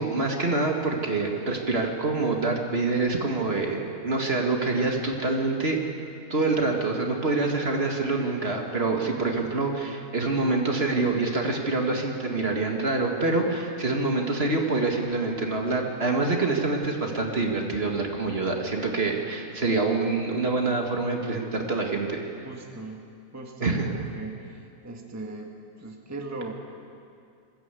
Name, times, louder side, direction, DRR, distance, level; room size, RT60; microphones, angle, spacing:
voice 1, 0.0-5.8 6.3-22.4 23.6-23.9, right 3 dB, 40° right, 1 dB, 2.0 m, -26 dB
voice 2, 22.4-23.1 23.3-26.5, right 2 dB, 10° right, 1 dB, 1.4 m, -39 dB
21.0 x 15.5 x 8.3 m, 2.5 s
omnidirectional pair, 1.6 m